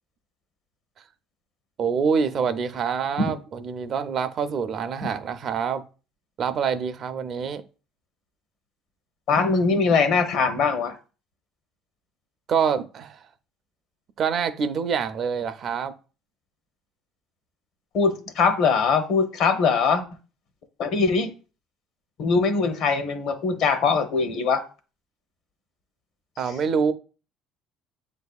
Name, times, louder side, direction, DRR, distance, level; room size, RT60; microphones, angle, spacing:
voice 1, 1.8-5.8 6.4-7.6 12.5-13.2 14.2-15.9 26.4-26.9, right 6 dB, 50° right, 0.5 m, -26 dB
voice 2, 9.3-11.0 17.9-20.0 20.8-21.3 22.2-24.6, left 5 dB, 65° left, 0.8 m, -22 dB
7.7 x 2.6 x 2.3 m
supercardioid pair, 80°, 0 cm